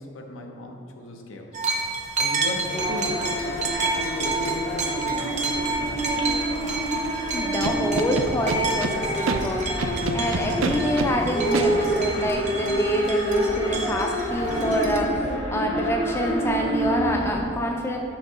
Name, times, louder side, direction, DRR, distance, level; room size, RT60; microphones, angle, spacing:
voice 1, 0.0-1.6 2.2-4.7 5.0-6.1, left 1 dB, 85° left, 3 dB, 0.7 m, -37 dB
sound 1, 1.5-15.0, right 3 dB, 35° right, 0.6 m, -30 dB
sound 2, 2.7-17.4, equal, 30° left, 0.8 m, -28 dB
voice 2, 7.3-9.7 10.1-18.0, equal, 10° left, 2 dB, 0.3 m, -27 dB
Scratching (performance technique), 7.6-8.9 9.3-9.4 9.8-11.1 11.5-11.7, right 4 dB, 85° right, 0.5 m, -26 dB
5.9 x 3.7 x 5.4 m, 2.8 s
head